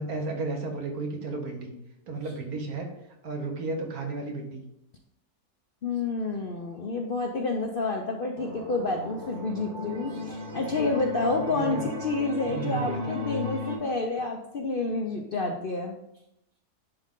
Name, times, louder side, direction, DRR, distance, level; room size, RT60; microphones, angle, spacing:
voice 1, 0.0-1.7 2.1-2.9 3.2-4.6 11.3-11.9 12.5-13.2, right 3 dB, 70° right, 2 dB, 1.7 m, -33 dB
voice 2, 5.8-16.0, left 3 dB, 50° left, 1 dB, 0.6 m, -29 dB
sound 1, 8.4-13.8, left 2 dB, 35° right, 1.1 m, -35 dB
10.5 x 3.7 x 3.7 m, 0.83 s
omnidirectional pair, 1.6 m